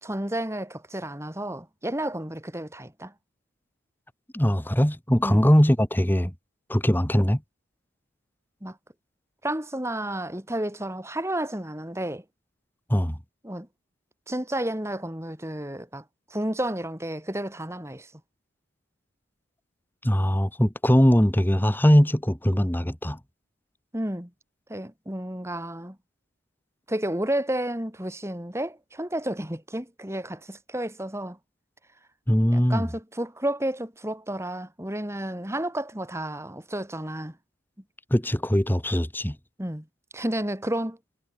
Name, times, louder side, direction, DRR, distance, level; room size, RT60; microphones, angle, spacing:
voice 1, 0.0-3.1 5.2-5.5 8.6-8.8 9.4-12.2 13.4-13.7 14.3-16.0 16.3-18.1 23.9-24.3 24.7-26.0 26.9-31.4 32.5-37.4 39.6-39.9 40.1-41.0, right 1 dB, 15° right, 3.4 m, -31 dB
voice 2, 4.3-6.3 6.7-7.4 12.9-13.2 20.0-23.2 32.3-32.8 38.1-39.4, equal, 10° left, 1.9 m, -21 dB
head